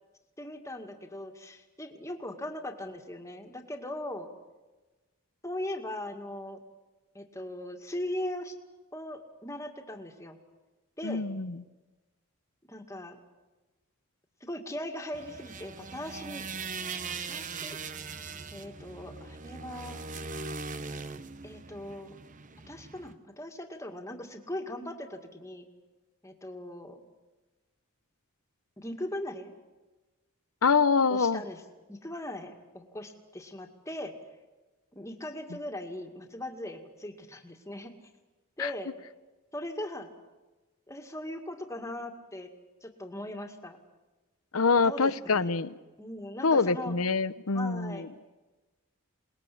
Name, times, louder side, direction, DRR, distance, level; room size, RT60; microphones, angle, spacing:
voice 1, 0.4-4.3 5.4-6.6 7.1-8.5 8.9-10.4 11.0-11.2 12.7-13.2 14.4-16.5 17.3-18.1 18.5-20.0 21.4-22.1 22.7-25.7 26.2-27.0 28.8-29.5 31.1-31.6 31.9-34.2 34.9-37.9 38.6-38.9 39.5-40.1 40.9-42.5 42.8-43.8 44.8-45.6 46.0-46.9 47.5-48.1, left 1 dB, 15° left, 4 dB, 2.2 m, -39 dB
voice 2, 11.0-11.6 30.6-31.4 38.6-38.7 44.5-45.7 46.4-48.1, left 4 dB, 90° left, 15 dB, 0.9 m, -25 dB
sound 1, 15.1-23.1, right 4 dB, 35° right, 0.9 m, -40 dB
28.0 x 20.5 x 8.6 m, 1.2 s
head